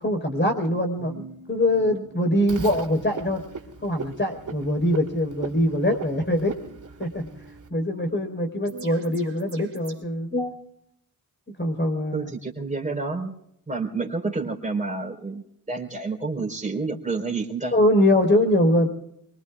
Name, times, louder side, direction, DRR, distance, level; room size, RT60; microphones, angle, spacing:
voice 1, 0.0-3.4 3.8-6.5 7.0-7.3 7.7-10.6 11.6-12.3 17.7-18.9, left 1 dB, 30° left, 4 dB, 4.3 m, -23 dB
sound 1, 1.0-10.0, right 3 dB, 35° right, 3.2 m, -47 dB
Frog, 2.5-7.7, right 5 dB, 55° right, 2.6 m, -38 dB
voice 2, 12.1-13.4 13.7-15.4 15.7-17.7, right 3 dB, 20° right, 1 dB, 4.1 m, -29 dB
24.5 x 24.0 x 2.4 m, 0.75 s
wide cardioid pair, 95°, 37 cm